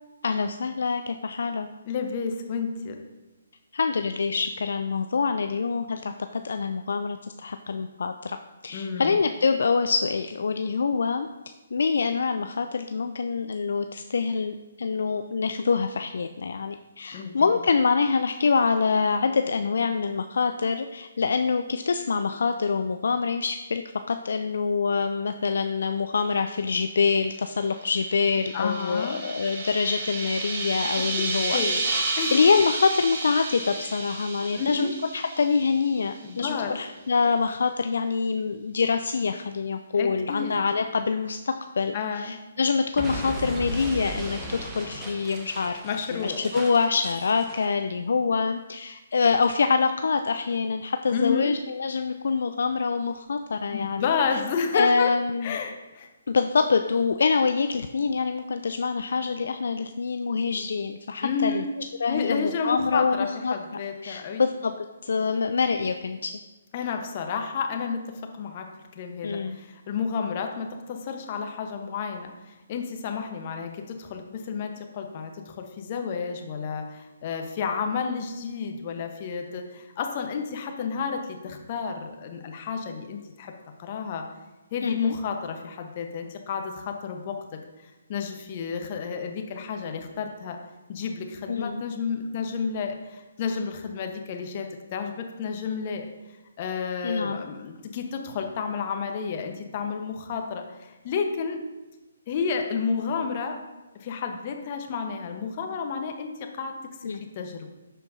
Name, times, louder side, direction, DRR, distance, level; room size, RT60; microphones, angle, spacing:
voice 1, 0.2-1.7 3.7-8.4 8.6-11.3 11.7-23.8 24.1-31.9 32.3-45.8 46.1-54.1 54.7-55.6 56.3-61.6 62.0-63.5 64.0-64.7 65.0-66.3 69.2-69.6 84.8-85.1 91.5-91.8 97.0-97.4 107.0-107.2, left 5 dB, 65° left, 8 dB, 0.3 m, -25 dB
voice 2, 1.9-3.0 8.7-9.1 17.1-17.6 28.5-29.2 31.0-31.1 31.5-31.8 32.2-32.3 34.5-34.9 36.2-36.7 40.0-40.6 41.9-42.3 45.8-46.5 51.1-51.6 53.7-55.1 55.4-56.1 61.2-61.7 62.1-64.4 66.7-68.0 68.4-68.7 68.9-83.5 83.8-84.3 84.7-87.4 88.1-90.6 90.9-96.1 96.6-101.6 102.3-103.6 104.0-106.3 106.6-106.7 107.4-107.7, left 6 dB, 40° left, 4 dB, 0.9 m, -31 dB
sound 1, 27.8-36.1, right 3 dB, 35° right, 2.0 m, -31 dB
Explosion, 42.9-47.7, equal, 15° right, 1.1 m, -36 dB
12.0 x 4.4 x 2.6 m, 1.1 s
figure-of-eight pair, 140°, 0 cm